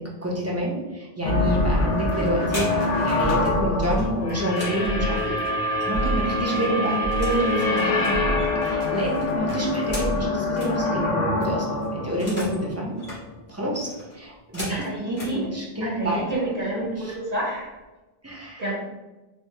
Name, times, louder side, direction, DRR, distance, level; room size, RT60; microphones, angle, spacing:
voice 1, 0.0-5.3 5.6-12.9 13.5-14.8 15.3-16.4 17.0-17.1 18.2-18.7, right 1 dB, 20° right, -4 dB, 0.4 m, -28 dB
sound 1, 1.2-13.4, left 2 dB, 55° left, 0.5 m, -25 dB
sound 2, 1.6-5.5 5.9-10.3, right 1 dB, 80° right, 0.9 m, -32 dB
sound 3, 2.5-3.4 3.8-6.1 6.4-7.4 7.7-10.7 11.1-11.2 11.4-12.6 12.9-13.2 13.7-15.4 16.2-16.4 16.7-17.0 17.3-17.8, left 1 dB, 85° left, 1.8 m, -38 dB
voice 2, 14.7-15.5 15.8-17.8 18.6-18.7, right 1 dB, 45° right, -8 dB, 0.8 m, -29 dB
4.4 x 2.1 x 2.7 m, 1.1 s
omnidirectional pair, 1.0 m